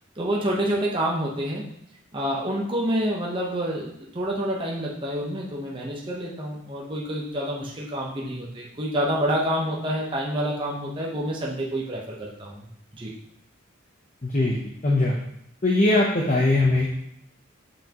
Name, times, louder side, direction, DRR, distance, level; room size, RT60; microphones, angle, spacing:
voice 1, 0.2-1.6 2.1-12.7 12.9-13.1, equal, 25° right, -3 dB, 0.9 m, -28 dB
voice 2, 14.2-15.1 15.6-17.0, left 2 dB, 35° left, -1 dB, 0.8 m, -21 dB
7.1 x 5.8 x 3.0 m, 0.74 s
head